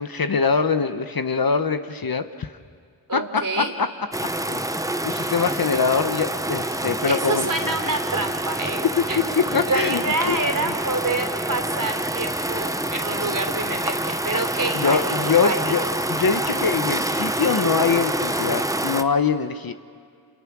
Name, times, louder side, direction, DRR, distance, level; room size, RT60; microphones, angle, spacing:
voice 1, 0.0-2.5 3.1-3.9 4.4-4.7 5.0-7.5 8.8-9.0 9.4-10.4 10.7-10.8 14.7-19.7, left 5 dB, 50° left, 9 dB, 1.1 m, -23 dB
voice 2, 3.1-3.7 7.1-9.3 9.7-15.9, right 2 dB, 45° right, 4 dB, 3.5 m, -27 dB
sound 1, 4.1-19.0, right 1 dB, 5° right, 0.8 m, -27 dB
29.0 x 28.0 x 6.2 m, 2.2 s
wide cardioid pair, 80°, 45 cm